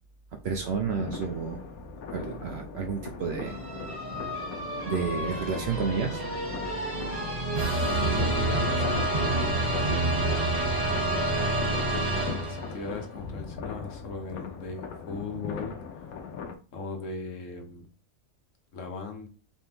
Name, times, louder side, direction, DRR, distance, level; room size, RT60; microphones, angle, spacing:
voice 1, 0.4-1.6 2.1-3.6 4.9-6.2, right 5 dB, 60° right, 3 dB, 0.7 m, -30 dB
sound 1, 0.8-16.5, left 6 dB, 85° left, 1.2 m, -40 dB
sound 2, 3.4-12.9, right 2 dB, 30° right, 1.4 m, -28 dB
voice 2, 8.2-10.2 10.7-11.6 11.9-16.1 16.7-17.9 18.7-19.3, left 4 dB, 65° left, 4 dB, 1.2 m, -38 dB
4.3 x 3.5 x 2.9 m, 0.34 s
omnidirectional pair, 1.5 m